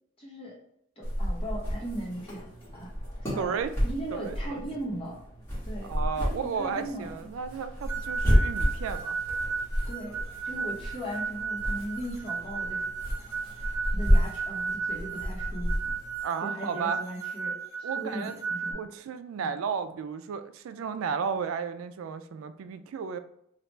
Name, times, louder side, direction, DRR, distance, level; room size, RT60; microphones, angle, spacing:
voice 1, 0.2-0.6 1.0-2.4 2.7-2.9 3.2-3.5 3.8-5.2 5.7-7.3 9.9-12.9 13.6-15.7 16.4-18.8 19.4-19.5, right 1 dB, 30° left, -5 dB, 1.0 m, -38 dB
sound 1, 1.0-16.2, equal, 15° left, 1.2 m, -31 dB
voice 2, 3.4-3.7 4.1-4.6 5.8-9.2 16.2-17.0 17.8-18.3 18.7-23.2, right 6 dB, 90° right, 10 dB, 0.3 m, -33 dB
sound 2, 7.9-18.7, right 5 dB, 15° right, 0.4 m, -34 dB
3.2 x 2.4 x 3.1 m, 0.72 s
head